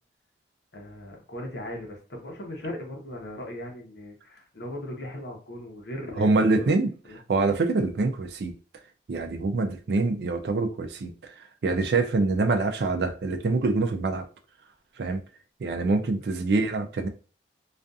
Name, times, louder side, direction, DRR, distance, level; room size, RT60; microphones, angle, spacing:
voice 1, 0.7-6.8 7.1-7.2 16.2-16.4, left 1 dB, 75° left, 0.8 m, -38 dB
voice 2, 6.2-8.5 9.1-14.3 15.0-15.2 15.6-17.1, right 3 dB, 70° right, 0.4 m, -25 dB
2.4 x 2.3 x 2.5 m
head